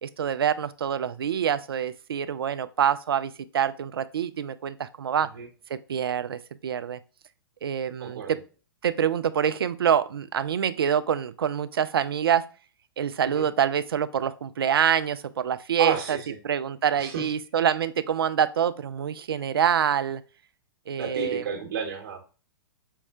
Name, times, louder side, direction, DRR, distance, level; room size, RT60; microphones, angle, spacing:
voice 1, 0.0-5.3 5.7-7.0 7.6-8.4 8.8-12.5 13.0-16.2 16.4-20.2 20.9-21.5, right 8 dB, 80° right, 0.4 m, -26 dB
voice 2, 8.0-8.3 13.2-13.4 15.8-16.4 17.0-17.3 21.0-22.3, right 6 dB, 65° right, 1.1 m, -31 dB
5.4 x 2.1 x 3.5 m
hypercardioid pair, 115°, 12 cm